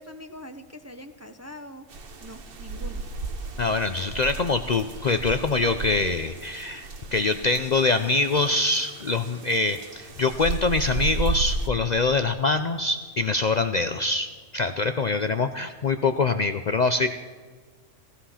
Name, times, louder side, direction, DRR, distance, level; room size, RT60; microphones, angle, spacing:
voice 1, 0.0-1.8 2.2-3.0, equal, 15° right, 7 dB, 0.6 m, -43 dB
sound 1, 1.9-11.7, right 3 dB, 50° right, 1.2 m, -34 dB
voice 2, 3.6-17.1, left 3 dB, 50° left, 9 dB, 0.6 m, -24 dB
16.0 x 15.0 x 5.7 m, 1.5 s
omnidirectional pair, 1.2 m